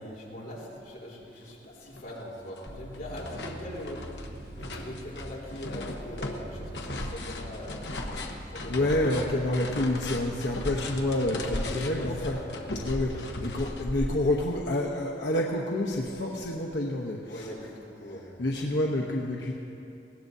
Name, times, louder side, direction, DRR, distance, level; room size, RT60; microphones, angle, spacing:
voice 1, 0.0-4.1 4.5-8.0 8.5-8.9 10.0-10.3 11.4-12.7 13.0-13.2 17.3-18.3, equal, 55° left, -5 dB, 3.8 m, -41 dB
sound 1, 1.5-1.6 1.9-2.7 2.9-14.6, left 1 dB, 70° left, 1.1 m, -37 dB
sound 2, 2.7-12.2, right 1 dB, 55° right, 1.1 m, -43 dB
voice 2, 8.7-12.4 12.8-13.1 13.4-17.5 18.4-19.5, left 1 dB, 90° left, -2 dB, 1.0 m, -28 dB
19.5 x 17.0 x 2.7 m, 2.8 s
head